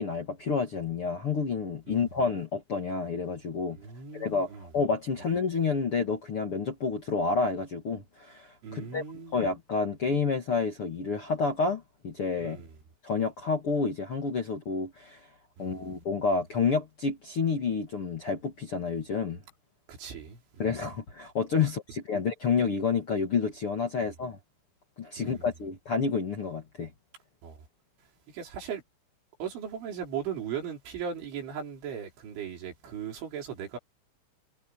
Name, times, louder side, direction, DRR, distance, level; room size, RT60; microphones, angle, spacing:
voice 1, 0.0-3.8 4.1-9.0 9.3-12.6 13.0-15.2 15.6-19.4 20.6-24.4 25.0-26.9, left 5 dB, 50° left, 1.7 m, -29 dB
voice 2, 3.7-4.7 8.6-9.4 12.4-12.8 15.6-15.9 19.9-20.7 24.0-24.1 25.2-25.5 27.4-27.6 28.3-28.8 29.4-33.8, right 7 dB, 85° right, 7.0 m, -38 dB
omnidirectional pair, 5.3 m